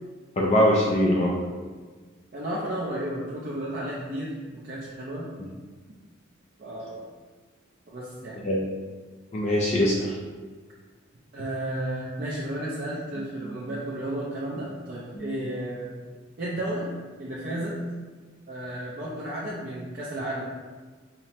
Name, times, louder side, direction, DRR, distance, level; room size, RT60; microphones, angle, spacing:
voice 1, 0.4-1.3 8.4-8.6 9.3-10.1 15.2-15.3, left 1 dB, 35° left, -2 dB, 0.4 m, -22 dB
voice 2, 2.3-5.4 6.6-7.0 7.9-8.4 11.3-15.9 16.4-17.8 18.5-20.5, right 1 dB, 45° right, -6 dB, 0.5 m, -33 dB
5.7 x 2.1 x 2.8 m, 1.4 s
head